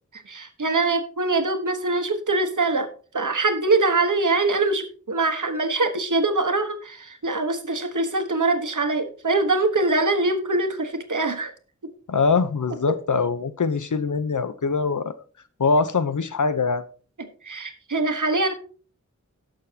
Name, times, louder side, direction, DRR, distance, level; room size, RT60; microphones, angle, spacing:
voice 1, 0.1-11.5 12.9-13.0 17.4-18.6, right 3 dB, 80° right, 7 dB, 1.3 m, -23 dB
voice 2, 12.1-15.1 15.6-16.8, left 4 dB, 80° left, 13 dB, 0.8 m, -23 dB
18.0 x 6.5 x 2.8 m, 0.40 s
wide cardioid pair, 60°, 30 cm